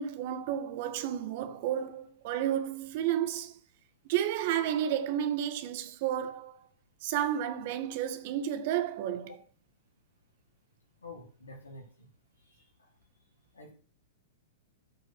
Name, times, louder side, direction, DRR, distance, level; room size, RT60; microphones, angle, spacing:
voice 1, 0.0-3.5 4.1-6.6 7.0-9.4, right 10 dB, 50° right, 1.7 m, -31 dB
voice 2, 11.0-12.1 12.5-12.6 13.5-13.7, left 2 dB, 85° left, 3.7 m, -48 dB
14.0 x 6.4 x 6.3 m
hypercardioid pair, 110°, 0 cm